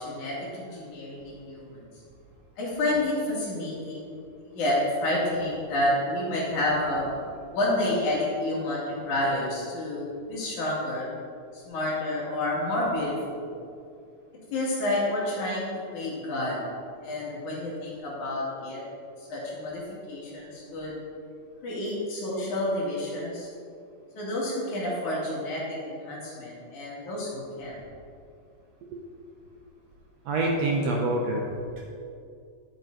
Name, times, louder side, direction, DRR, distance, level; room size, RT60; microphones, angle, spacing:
voice 1, 0.0-1.9 2.6-4.2 4.4-7.1 7.5-11.1 11.5-13.5 14.5-16.6 17.0-18.8 19.3-21.0 21.6-23.5 24.2-27.8, left 1 dB, 65° left, -5 dB, 3.5 m, -29 dB
voice 2, 30.2-31.4, right 2 dB, 70° right, -1 dB, 1.7 m, -26 dB
10.5 x 7.9 x 3.9 m, 2.4 s
omnidirectional pair, 3.8 m